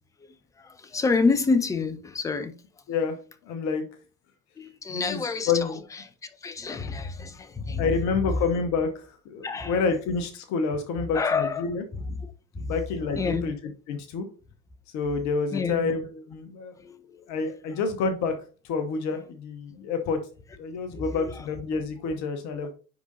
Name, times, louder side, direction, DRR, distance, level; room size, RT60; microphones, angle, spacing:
voice 1, 0.6-2.6 4.6-5.7 6.4-7.9 9.4-9.8 11.1-11.7 12.0-12.2 12.5-12.7 13.2-13.5 15.5-15.9 16.8-17.2 20.9-21.4, left 4 dB, 10° left, 0.4 m, -28 dB
voice 2, 3.4-3.9 4.9-5.8 7.8-11.8 12.7-13.5 13.9-14.3 14.9-16.7 17.3-18.4 18.6-20.2 20.6-22.7, left 4 dB, 40° left, 1.0 m, -28 dB
9.6 x 3.8 x 2.7 m
figure-of-eight pair, 80°, 45 cm